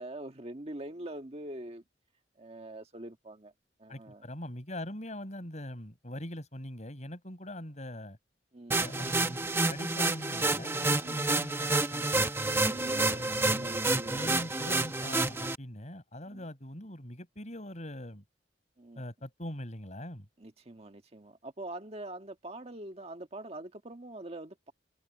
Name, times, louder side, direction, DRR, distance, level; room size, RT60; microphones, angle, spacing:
voice 1, 0.0-1.8 2.4-3.5 3.8-4.2 8.5-8.9 11.0-11.2 12.7-14.4 16.3-16.4 18.8-19.0 20.4-24.7, right 1 dB, 35° right, 1.5 m, -43 dB
voice 2, 3.9-8.2 8.8-9.4 9.7-12.3 13.1-18.2 18.9-20.3, left 1 dB, 40° left, 6.5 m, -42 dB
sound 1, 8.7-15.6, right 2 dB, 15° right, 0.9 m, -29 dB
head